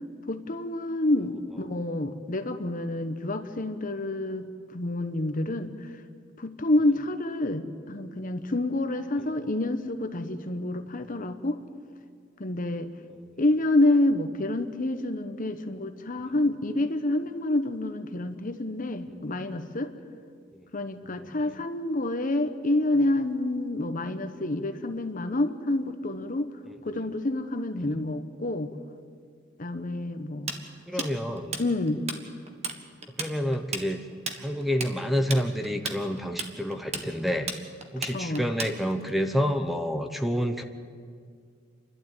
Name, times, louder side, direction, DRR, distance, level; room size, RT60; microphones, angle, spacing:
voice 1, 0.3-5.9 6.4-11.6 12.4-12.9 13.4-19.9 20.7-26.5 26.8-28.7 29.6-30.5 30.9-31.1 31.6-32.0 38.1-38.5, left 1 dB, 45° left, 9 dB, 1.0 m, -28 dB
voice 2, 21.0-21.5 27.8-27.9 30.9-31.6 33.2-34.0 34.4-37.6 37.9-40.6, equal, ahead, 6 dB, 0.9 m, -28 dB
Tools, 30.5-32.2 32.5-32.8 33.0-39.1, right 4 dB, 35° right, 1.5 m, -34 dB
29.0 x 12.0 x 9.1 m, 2.1 s
head